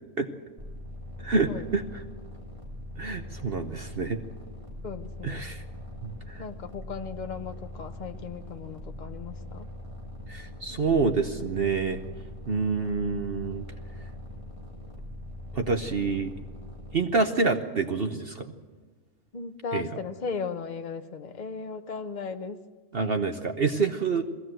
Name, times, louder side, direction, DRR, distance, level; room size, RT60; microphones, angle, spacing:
sound 1, 0.6-17.0, left 1 dB, 20° right, 2.4 m, -42 dB
voice 1, 1.2-2.0 3.0-4.2 5.2-5.6 6.0-6.4 10.3-12.0 12.5-13.6 15.5-16.3 16.9-18.5 19.7-19.9 22.9-24.2, right 4 dB, 45° right, 6 dB, 0.9 m, -27 dB
voice 2, 4.8-5.5 6.4-9.7 19.3-22.6, left 5 dB, 35° left, 7 dB, 0.9 m, -36 dB
21.0 x 16.0 x 7.8 m, 1.4 s
omnidirectional pair, 1.6 m